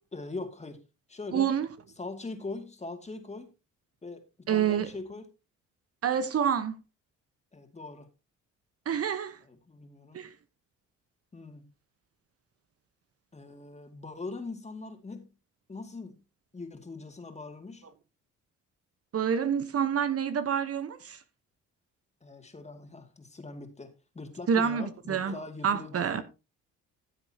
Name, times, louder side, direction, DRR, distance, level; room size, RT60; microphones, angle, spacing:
voice 1, 0.1-0.8 1.1-1.5 2.0-3.5 4.0-5.3 7.5-8.1 9.5-10.2 11.3-11.7 13.3-15.3 15.7-16.2 16.5-17.8 22.2-26.2, left 3 dB, 20° left, 2.3 m, -41 dB
voice 2, 1.3-1.7 4.5-4.9 6.0-6.8 8.9-9.4 10.1-10.3 19.1-21.2 24.5-26.2, right 8 dB, 50° right, 1.1 m, -28 dB
15.0 x 7.8 x 2.9 m
cardioid pair, 90°, 30 cm